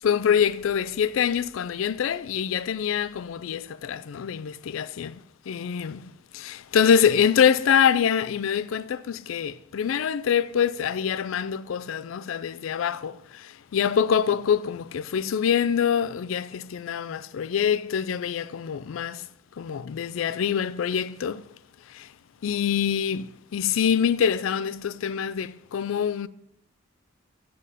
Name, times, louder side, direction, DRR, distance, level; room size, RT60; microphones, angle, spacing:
voice 1, 0.0-5.2 5.5-19.3 19.6-21.5 21.9-22.1 22.4-26.3, left 8 dB, 85° left, 0.4 m, -25 dB
8.0 x 7.8 x 4.9 m
head